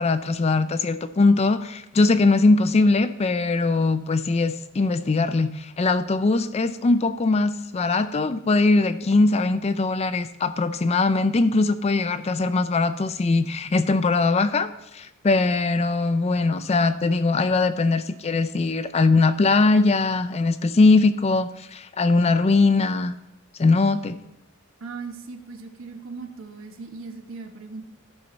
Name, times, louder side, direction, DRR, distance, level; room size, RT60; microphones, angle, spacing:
voice 1, 0.0-23.2 23.6-24.2, left 3 dB, 30° left, 12 dB, 0.4 m, -21 dB
voice 2, 24.8-27.8, right 4 dB, 60° right, 6 dB, 1.0 m, -38 dB
14.0 x 6.0 x 4.1 m, 0.85 s
head